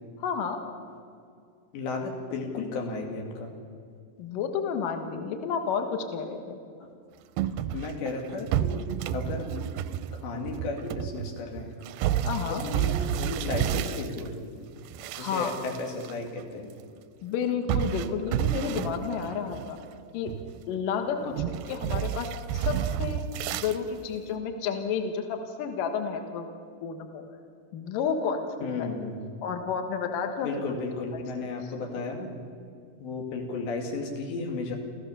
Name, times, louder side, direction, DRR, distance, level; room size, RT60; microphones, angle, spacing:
voice 1, 0.2-0.6 4.2-6.6 12.2-12.6 15.2-15.6 17.2-19.8 20.1-20.3 20.7-23.2 23.5-26.5 26.8-27.2 27.7-28.9 29.4-30.7 31.1-31.2 31.6-31.7, left 6 dB, 60° left, 5 dB, 2.7 m, -31 dB
voice 2, 1.7-3.5 6.8-6.9 7.7-8.8 9.1-9.7 10.1-11.8 12.5-14.7 15.2-16.7 21.2-21.4 28.6-29.2 30.4-32.3 33.0-34.8, left 3 dB, 80° left, 2 dB, 4.7 m, -34 dB
sound 1, 7.4-14.3 14.8-16.1 16.4-16.5 17.7-19.9 20.3-20.8 21.4-23.8, right 10 dB, 80° right, 2.3 m, -31 dB
28.0 x 15.5 x 6.9 m, 2.3 s
omnidirectional pair, 5.0 m